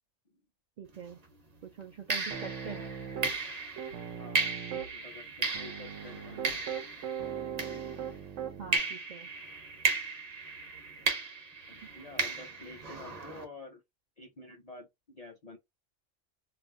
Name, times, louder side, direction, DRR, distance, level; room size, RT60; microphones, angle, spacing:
voice 1, 0.8-1.2 1.6-2.9 8.6-9.3, right 6 dB, 65° right, 0.4 m, -44 dB
sound 1, 0.9-1.2 2.1-8.3 8.7-13.4, right 4 dB, 40° right, 0.8 m, -35 dB
Piano, 2.3-3.4 3.8-4.9 5.5-8.8, right 8 dB, 85° right, 1.0 m, -39 dB
voice 2, 2.6-3.3 4.1-6.6 11.7-13.8 14.2-15.6, left 2 dB, 50° left, 0.5 m, -49 dB
2.4 x 2.1 x 3.6 m
omnidirectional pair, 1.2 m